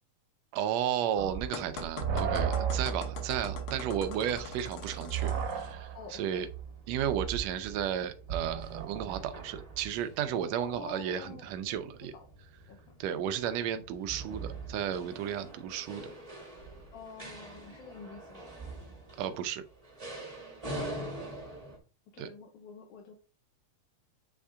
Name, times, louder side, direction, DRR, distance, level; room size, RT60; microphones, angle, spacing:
voice 1, 0.5-6.5 6.9-12.1 13.0-16.1 19.2-19.6 22.2-22.3, right 9 dB, 75° right, 9 dB, 1.6 m, -33 dB
sound 1, 1.2-9.3, right 7 dB, 55° right, 1.3 m, -35 dB
sound 2, 1.5-5.7, left 4 dB, 60° left, 1.5 m, -43 dB
sound 3, 5.6-21.8, right 2 dB, 25° right, 0.7 m, -45 dB
voice 2, 5.9-6.4 10.6-11.4 11.7-12.3 12.7-12.8 16.9-18.7 20.8-21.2 22.1-23.1, left 5 dB, 75° left, 2 dB, 2.3 m, -48 dB
8.4 x 3.5 x 3.6 m, 0.36 s
omnidirectional pair, 3.6 m